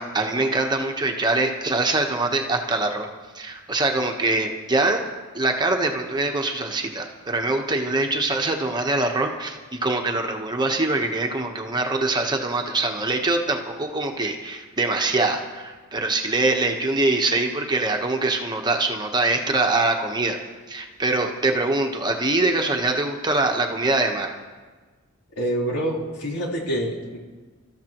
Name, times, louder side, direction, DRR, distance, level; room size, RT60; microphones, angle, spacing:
voice 1, 0.0-3.1 3.3-5.0 5.3-20.4 20.7-24.3, right 2 dB, 20° right, 3 dB, 1.1 m, -23 dB
voice 2, 25.4-27.2, right 1 dB, 80° left, -3 dB, 3.8 m, -26 dB
29.0 x 13.5 x 3.0 m, 1.4 s
head